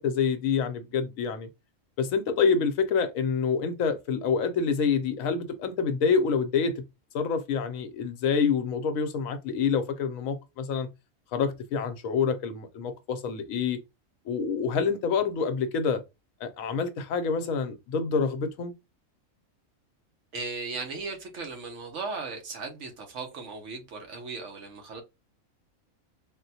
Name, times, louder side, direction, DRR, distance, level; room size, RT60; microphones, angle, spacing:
voice 1, 0.0-1.5 2.0-6.7 7.1-10.9 11.3-13.8 14.3-16.0 16.4-18.7, left 5 dB, 75° left, 1.0 m, -27 dB
voice 2, 20.3-25.0, right 4 dB, 65° right, 1.1 m, -37 dB
3.7 x 2.1 x 2.7 m
omnidirectional pair, 1.4 m